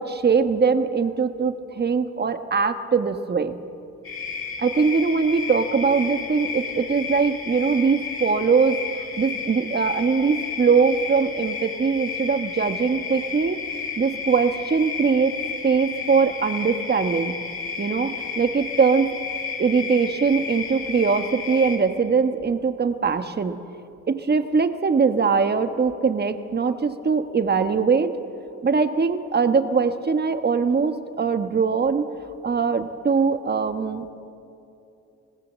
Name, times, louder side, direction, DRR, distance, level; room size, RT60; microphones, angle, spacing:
voice 1, 0.0-3.6 4.6-8.8 9.2-13.6 14.0-15.3 15.6-17.3 17.8-19.2 19.6-23.6 24.1-28.2 28.6-32.1 32.4-34.1, right 5 dB, 35° right, 9 dB, 1.4 m, -21 dB
sound 1, 4.0-21.8, left 5 dB, 45° left, 4.5 m, -32 dB
26.5 x 17.5 x 7.6 m, 2.7 s
cardioid pair, 90°, 30 cm